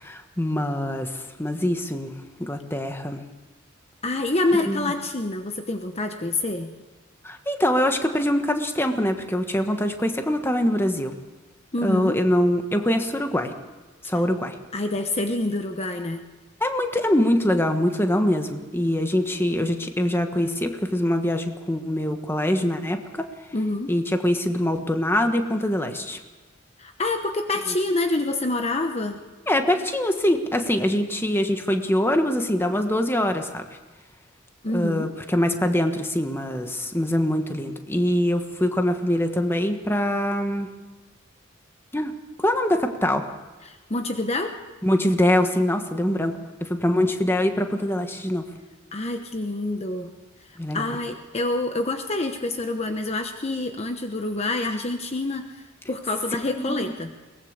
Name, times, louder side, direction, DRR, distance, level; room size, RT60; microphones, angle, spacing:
voice 1, 0.0-3.2 4.7-4.9 7.2-11.2 11.8-13.5 14.0-14.5 16.6-23.3 23.9-26.2 27.7-27.8 29.5-33.6 34.7-40.7 41.9-42.1 42.4-43.3 44.8-48.5 50.6-50.8 56.6-56.9, left 1 dB, 10° left, 6 dB, 1.3 m, -24 dB
voice 2, 4.0-6.7 11.7-12.2 14.7-16.2 23.5-23.9 26.8-29.2 34.6-35.1 43.7-44.5 48.9-50.1 50.7-55.4 55.9-57.1, left 2 dB, 30° left, 6 dB, 1.0 m, -27 dB
22.0 x 19.0 x 6.6 m, 1.3 s
head